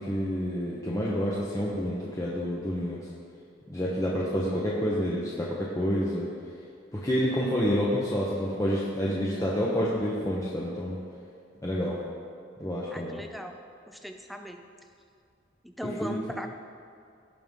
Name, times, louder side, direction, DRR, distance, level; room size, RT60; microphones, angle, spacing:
voice 1, 0.0-3.0 3.7-6.3 6.9-11.0 11.6-12.0 12.6-13.2 16.0-16.2, equal, 15° left, -5 dB, 0.9 m, -28 dB
voice 2, 12.9-13.6 13.9-14.6 15.6-16.5, equal, ahead, 5 dB, 0.5 m, -38 dB
16.5 x 5.6 x 3.7 m, 2.4 s
head